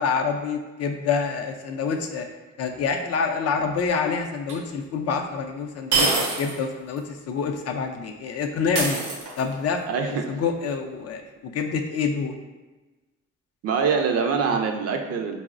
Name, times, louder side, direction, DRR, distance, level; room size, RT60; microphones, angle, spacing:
voice 1, 0.0-2.3 2.6-6.1 6.4-9.0 9.4-12.3, left 5 dB, 55° left, 4 dB, 0.4 m, -27 dB
sound 1, 4.5-4.6 5.9-6.6 7.0-7.1 8.7-9.6, right 3 dB, 85° right, 0.7 m, -24 dB
voice 2, 9.9-10.3 13.6-15.4, right 5 dB, 55° right, 4 dB, 0.4 m, -24 dB
3.8 x 2.0 x 2.4 m, 1.2 s
cardioid pair, 90°, 30 cm